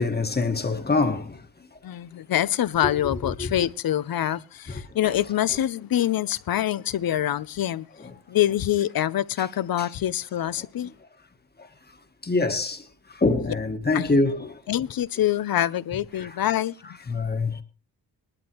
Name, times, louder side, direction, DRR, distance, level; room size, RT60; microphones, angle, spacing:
voice 1, 0.0-1.4 12.2-12.8 13.2-14.4 17.1-17.6, left 3 dB, 25° left, 1.5 m, -23 dB
voice 2, 1.8-7.9 8.3-10.9 13.9-14.2 14.7-17.0, left 12 dB, 70° left, 0.6 m, -25 dB
20.5 x 11.5 x 3.0 m
wide cardioid pair, 115°, 37 cm